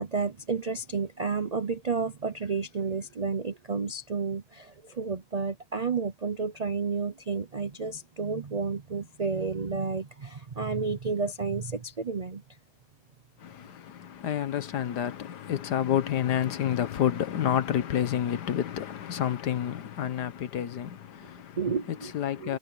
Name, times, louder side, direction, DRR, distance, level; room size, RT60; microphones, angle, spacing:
voice 1, 0.0-12.4 21.6-22.1 22.4-22.6, right 5 dB, 70° right, 0.3 m, -31 dB
voice 2, 13.4-21.6 22.0-22.6, left 10 dB, 75° left, 1.6 m, -29 dB
omnidirectional pair, 1.8 m